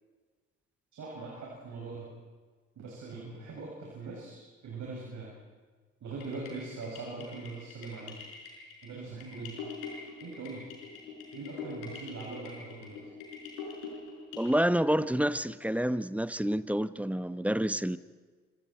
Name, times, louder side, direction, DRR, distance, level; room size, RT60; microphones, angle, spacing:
voice 1, 0.9-2.1 2.8-5.3 6.0-8.2 8.8-9.6 10.2-10.6 11.3-13.1, right 3 dB, 50° right, -3 dB, 7.3 m, -41 dB
sound 1, 6.2-14.6, left 4 dB, 70° left, 5.9 m, -44 dB
voice 2, 14.3-18.0, equal, 5° right, 14 dB, 1.0 m, -28 dB
26.5 x 26.0 x 4.6 m, 1.4 s
figure-of-eight pair, 50°, 36 cm